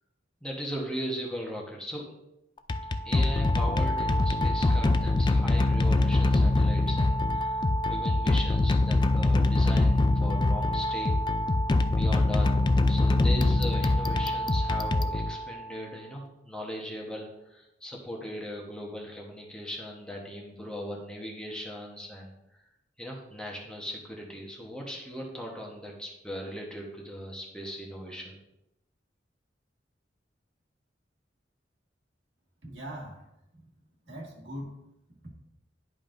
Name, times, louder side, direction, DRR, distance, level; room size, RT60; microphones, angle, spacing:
voice 1, 0.4-2.2 3.0-7.6 7.8-11.1 11.9-22.3 23.0-28.4, equal, 5° left, -2 dB, 1.1 m, -38 dB
sound 1, 2.6-15.8, left 2 dB, 25° left, 0.3 m, -24 dB
voice 2, 32.6-33.3 34.1-34.8 35.2-35.3, equal, 75° right, -1 dB, 1.8 m, -40 dB
10.5 x 5.4 x 2.6 m, 0.87 s
head